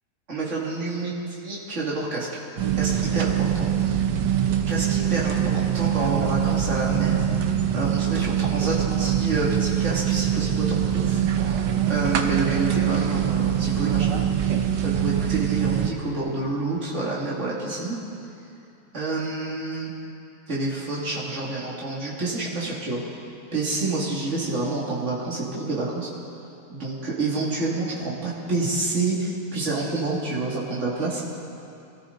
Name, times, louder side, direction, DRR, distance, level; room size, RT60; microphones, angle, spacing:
voice 1, 0.3-2.3 2.8-3.7 4.7-7.2 7.7-18.0 18.9-19.9 20.5-23.0 23.5-26.1 26.7-31.2, right 2 dB, 45° right, -6 dB, 3.1 m, -28 dB
sound 1, 2.6-15.9, right 9 dB, 90° right, 1.5 m, -23 dB
24.5 x 14.0 x 4.1 m, 2.8 s
omnidirectional pair, 1.7 m